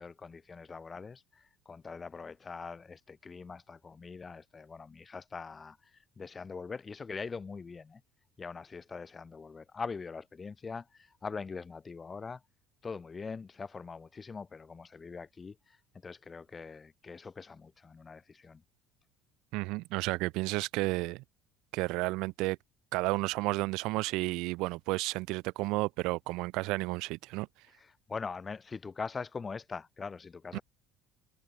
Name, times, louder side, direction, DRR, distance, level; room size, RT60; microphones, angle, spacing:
voice 1, 0.0-8.0 8.4-12.4 12.8-18.6 27.7-30.6, left 5 dB, 25° left, 7.2 m, -42 dB
voice 2, 19.5-21.2 21.7-22.6 22.9-27.5 30.5-30.6, right 22 dB, 65° right, 3.1 m, -32 dB
hypercardioid pair, 60°, 0 cm